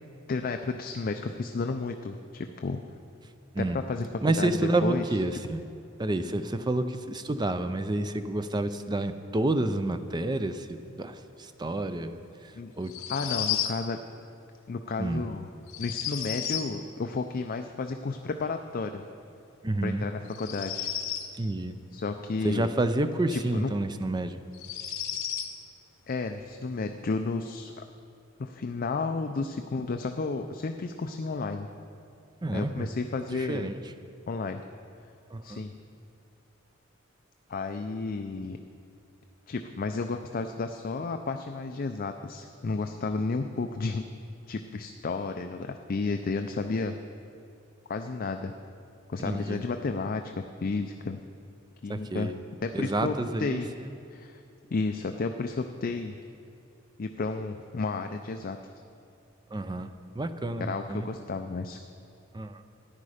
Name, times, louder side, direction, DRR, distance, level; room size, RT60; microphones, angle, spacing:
voice 1, 0.3-2.8 3.6-4.1 4.4-5.0 12.5-12.7 13.1-14.0 14.7-15.5 15.8-19.0 19.8-20.9 21.9-22.7 23.3-23.7 26.1-27.8 28.4-31.7 32.5-33.7 34.3-34.7 35.4-35.7 37.5-38.6 39.5-44.1 44.5-47.0 47.9-48.5 49.1-51.2 51.8-52.3 52.6-53.7 54.1-54.4 54.7-56.2 57.0-58.6 60.6-61.8, left 3 dB, 45° left, 6 dB, 0.4 m, -32 dB
voice 2, 4.2-5.6 6.0-12.2 12.8-12.9 15.0-15.3 19.6-20.1 21.4-21.8 22.4-24.4 32.4-32.9 33.3-33.8 35.3-35.6 49.2-49.6 51.9-52.3 52.7-53.9 59.5-59.9 60.1-61.1 62.3-62.6, right 2 dB, 20° right, 10 dB, 0.5 m, -29 dB
sound 1, 12.8-13.8 15.7-16.7 20.3-21.3 23.5-23.6 24.5-25.5, left 10 dB, 80° left, 0.9 m, -32 dB
13.5 x 10.0 x 5.0 m, 2.6 s
head